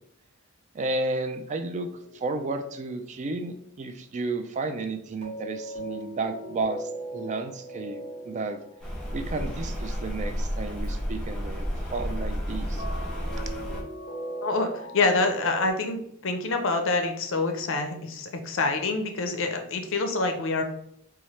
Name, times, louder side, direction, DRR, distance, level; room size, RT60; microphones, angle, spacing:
voice 1, 0.7-1.9 2.1-8.6 9.1-12.8, right 3 dB, 35° right, 8 dB, 0.3 m, -32 dB
sound 1, 1.8-3.2 5.2-10.8 12.8-15.7, right 1 dB, 30° left, 1.5 m, -39 dB
Rain, 8.8-13.8, equal, 5° left, 0.8 m, -31 dB
voice 2, 14.4-20.6, left 3 dB, 65° left, 6 dB, 0.6 m, -26 dB
4.2 x 2.4 x 3.1 m, 0.70 s
head